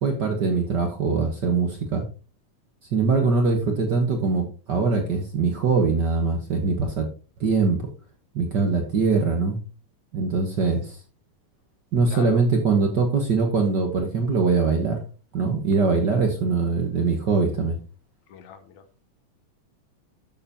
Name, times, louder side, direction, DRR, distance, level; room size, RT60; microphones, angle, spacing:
voice 1, 0.0-2.0 2.9-7.1 7.4-7.9 8.3-9.6 10.1-11.0 11.9-15.0 15.3-17.8, right 4 dB, 60° right, 4 dB, 1.1 m, -22 dB
voice 2, 12.1-12.4 18.3-19.0, left 8 dB, 70° left, 9 dB, 2.1 m, -41 dB
12.5 x 6.8 x 2.9 m, 0.35 s
omnidirectional pair, 3.7 m